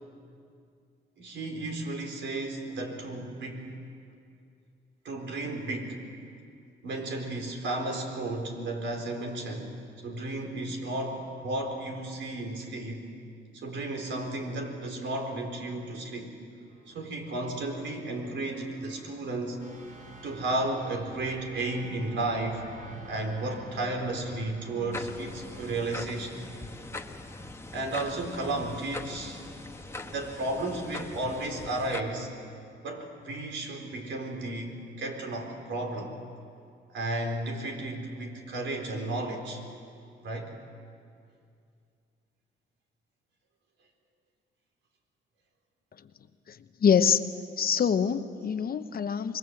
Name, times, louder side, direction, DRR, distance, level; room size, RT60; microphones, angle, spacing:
voice 1, 1.2-3.7 5.0-6.0 6.8-9.7 10.0-13.0 13.5-16.3 16.9-19.6 20.2-22.6 23.1-26.5 27.7-29.4 30.0-32.3 32.8-36.2 36.9-39.6 40.2-40.5, right 2 dB, 70° right, 3 dB, 4.3 m, -33 dB
sound 1, 16.7-27.0, right 1 dB, 45° right, 5.0 m, -48 dB
sound 2, 24.9-32.0, left 2 dB, 15° left, 1.4 m, -41 dB
voice 2, 46.5-47.2 47.6-49.4, left 7 dB, 50° left, 10 dB, 1.0 m, -25 dB
26.0 x 21.5 x 7.9 m, 2.4 s
cardioid pair, 90°, 20 cm